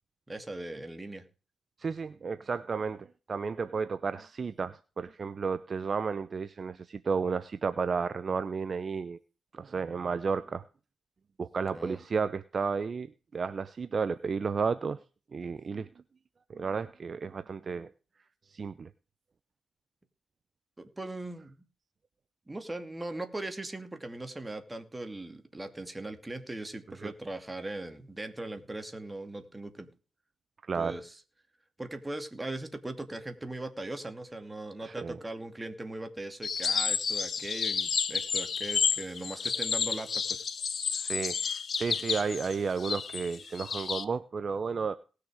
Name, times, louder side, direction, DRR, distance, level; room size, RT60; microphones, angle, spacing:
voice 1, 0.3-1.3 11.7-12.0 20.8-21.6 22.5-29.9 30.7-31.2 31.8-40.4, right 2 dB, 15° right, 7 dB, 2.4 m, -39 dB
voice 2, 1.8-9.2 9.5-10.6 11.4-13.1 13.3-15.0 15.3-15.9 16.5-17.9 18.5-18.9 27.0-27.1 30.7-30.9 34.8-35.2 40.9-44.9, right 5 dB, 45° right, 13 dB, 0.7 m, -32 dB
sound 1, 36.4-44.0, left 6 dB, 55° left, 1.1 m, -31 dB
18.5 x 6.7 x 4.9 m, 0.34 s
cardioid pair, 80°, 0 cm